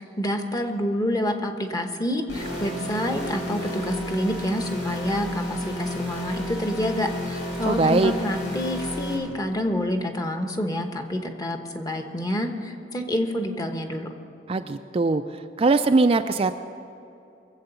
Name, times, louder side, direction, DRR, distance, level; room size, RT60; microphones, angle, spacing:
voice 1, 0.2-14.1, left 1 dB, 20° left, 5 dB, 1.0 m, -28 dB
sound 1, 2.3-9.1, equal, 85° left, 4.6 m, -31 dB
voice 2, 7.6-8.1 14.5-15.2 15.6-16.6, right 3 dB, 30° right, 8 dB, 0.3 m, -21 dB
22.0 x 7.9 x 6.8 m, 2.7 s
head